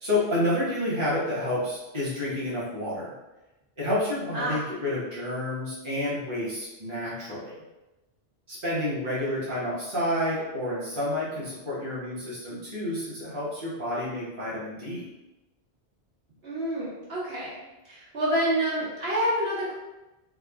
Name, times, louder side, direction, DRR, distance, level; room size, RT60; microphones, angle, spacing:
voice 1, 0.0-3.1 3.8-7.6 8.5-15.0, left 1 dB, 30° right, -8 dB, 1.0 m, -29 dB
voice 2, 16.4-19.7, right 1 dB, 65° right, -9 dB, 1.6 m, -28 dB
3.6 x 2.3 x 3.5 m, 1.0 s
omnidirectional pair, 1.1 m